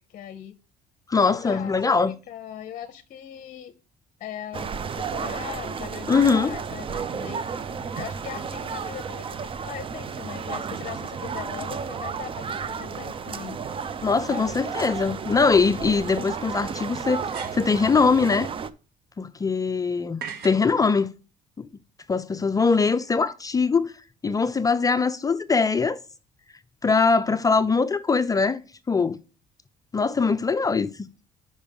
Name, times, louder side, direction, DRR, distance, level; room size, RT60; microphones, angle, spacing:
voice 1, 0.1-0.5 1.3-3.7 4.2-13.6 14.3-14.6 22.8-23.0, left 10 dB, 50° left, 0.8 m, -40 dB
voice 2, 1.1-2.1 6.1-6.5 14.0-17.3 17.5-18.5 19.2-21.1 21.6-21.7 22.1-23.9 24.2-26.0 26.8-28.6 28.9-29.2 29.9-31.1, left 4 dB, 20° left, 0.4 m, -22 dB
sound 1, 4.5-18.7, right 6 dB, 30° right, 0.5 m, -32 dB
sound 2, 17.1-17.8 20.2-20.7, right 6 dB, 70° right, 1.3 m, -38 dB
5.5 x 5.3 x 5.2 m
cardioid pair, 110°, 17 cm